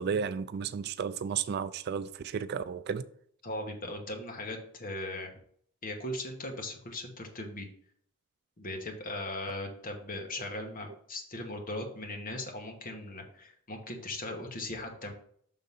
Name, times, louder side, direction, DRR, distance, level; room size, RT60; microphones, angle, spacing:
voice 1, 0.0-3.0, right 6 dB, 50° right, 0.3 m, -33 dB
voice 2, 3.4-5.3 5.8-7.7 8.6-15.1, left 1 dB, 40° left, 1.3 m, -38 dB
6.1 x 3.9 x 5.4 m
head